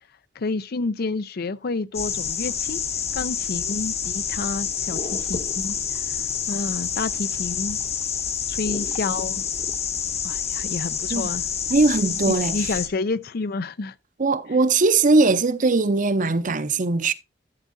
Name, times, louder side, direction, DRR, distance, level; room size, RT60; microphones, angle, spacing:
voice 1, 0.4-2.8 3.1-7.8 8.5-9.4 10.2-11.4 12.3-13.9, left 3 dB, 55° left, 0.5 m, -29 dB
sound 1, 1.9-12.9, left 7 dB, 35° left, 0.9 m, -28 dB
voice 2, 11.7-12.5 14.2-17.1, right 3 dB, 45° right, 0.7 m, -20 dB
11.5 x 7.3 x 2.7 m
head